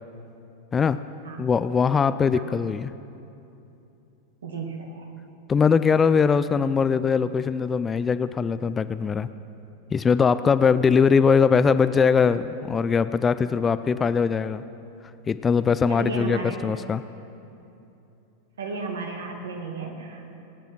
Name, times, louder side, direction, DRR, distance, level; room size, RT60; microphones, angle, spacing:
voice 1, 1.4-2.9 5.5-9.3 9.9-14.6 15.3-17.0, left 6 dB, 20° left, 13 dB, 0.4 m, -21 dB
voice 2, 4.4-5.1 15.9-16.5 18.6-20.4, right 3 dB, 65° right, 3 dB, 2.1 m, -33 dB
20.0 x 9.1 x 6.0 m, 2.8 s
figure-of-eight pair, 90°, 0 cm